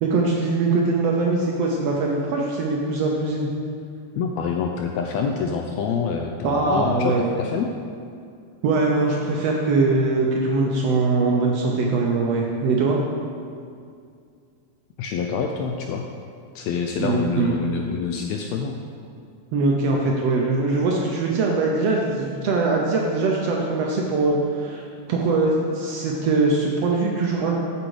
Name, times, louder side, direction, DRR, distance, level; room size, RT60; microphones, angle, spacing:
voice 1, 0.0-3.5 6.4-7.3 8.6-13.0 17.0-17.7 19.5-24.8 25.1-27.6, right 3 dB, 75° right, -1 dB, 1.6 m, -22 dB
voice 2, 4.1-7.7 15.0-16.0 16.5-18.8, left 6 dB, 80° left, 2 dB, 1.6 m, -26 dB
7.7 x 6.9 x 4.8 m, 2.3 s
omnidirectional pair, 3.5 m